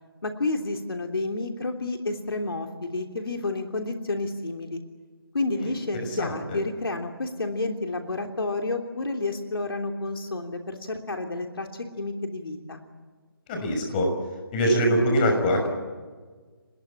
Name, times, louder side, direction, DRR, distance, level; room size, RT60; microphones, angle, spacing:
voice 1, 0.2-4.8 5.3-12.8, left 2 dB, 75° left, 4 dB, 3.2 m, -30 dB
voice 2, 6.2-6.6 13.5-14.1 14.5-15.7, equal, 25° left, 3 dB, 6.3 m, -23 dB
26.5 x 21.0 x 8.8 m, 1.4 s
figure-of-eight pair, 160°, 12 cm